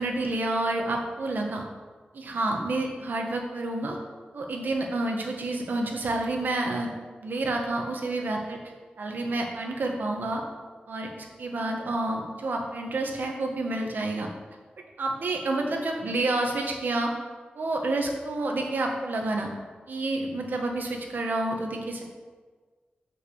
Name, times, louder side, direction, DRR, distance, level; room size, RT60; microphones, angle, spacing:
voice 1, 0.0-1.6 2.1-4.0 4.3-6.9 7.2-8.6 9.0-10.4 10.9-14.3 15.0-17.1 17.5-19.5 19.9-22.0, right 2 dB, 70° right, 1 dB, 1.5 m, -29 dB
6.6 x 6.4 x 7.1 m, 1.5 s
wide cardioid pair, 130°, 3 cm